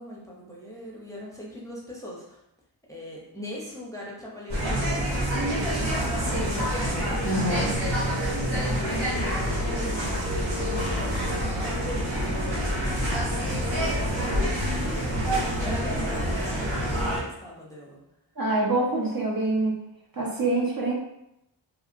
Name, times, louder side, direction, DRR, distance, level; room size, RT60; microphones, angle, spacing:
voice 1, 0.0-2.4 2.9-6.6 8.2-14.3 14.8-18.0, equal, 5° left, -5 dB, 0.7 m, -41 dB
sound 1, 4.5-17.2, equal, 80° right, 1.4 m, -27 dB
voice 2, 7.2-7.7 18.4-19.8 20.1-20.9, right 2 dB, 45° right, -3 dB, 0.8 m, -25 dB
2.8 x 2.7 x 2.5 m, 0.84 s
wide cardioid pair, 55°, 47 cm